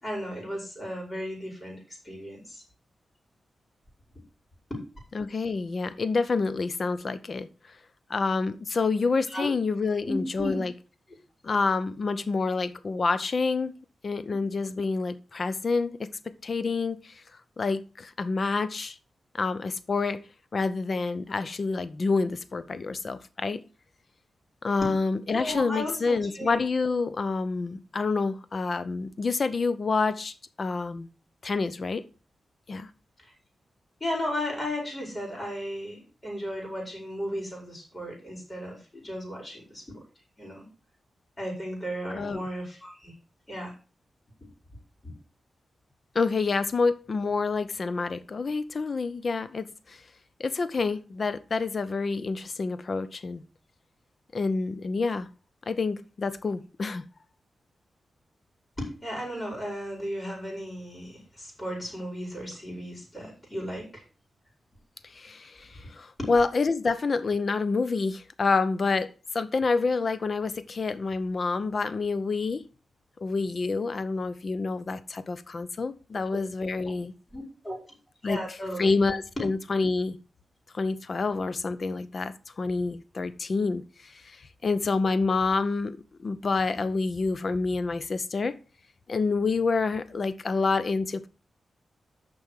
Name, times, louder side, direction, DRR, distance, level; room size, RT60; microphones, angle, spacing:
voice 1, 0.0-2.6 4.7-4.8 9.3-9.6 10.0-10.6 14.3-14.4 24.8-24.9 25.3-26.6 33.2-33.3 34.0-40.0 40.4-40.7 41.4-43.1 43.5-43.7 45.0-45.1 58.8-64.0 66.2-66.3 76.1-76.4 77.3-77.8 78.2-78.9, equal, 25° left, 5.0 m, -35 dB
voice 2, 5.1-7.5 8.1-10.7 11.4-13.7 14.0-17.2 17.6-19.0 19.3-20.2 20.5-23.6 24.6-31.1 31.4-32.0 32.7-32.9 42.1-42.4 46.1-50.0 50.4-53.4 54.3-55.3 55.7-57.0 65.0-72.6 73.2-77.1 78.2-78.4 78.8-80.2 80.7-88.6 89.1-91.3, left 4 dB, 50° left, 0.8 m, -28 dB
6.8 x 5.3 x 6.4 m
cardioid pair, 85°, 0 cm